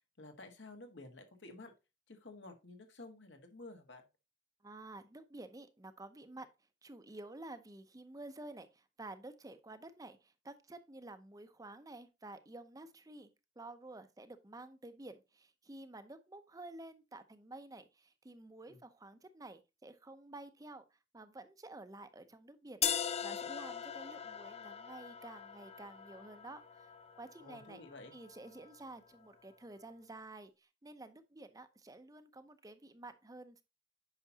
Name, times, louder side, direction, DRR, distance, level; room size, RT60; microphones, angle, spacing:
voice 1, 0.2-1.7 2.1-4.0 18.7-18.8 27.4-28.1, left 2 dB, 75° left, 1.7 m, -52 dB
voice 2, 4.6-6.5 6.8-13.3 13.6-27.8 28.1-33.6, right 2 dB, 20° right, 0.6 m, -51 dB
sound 1, 22.8-28.8, left 8 dB, 35° left, 0.5 m, -41 dB
9.0 x 5.8 x 2.8 m
head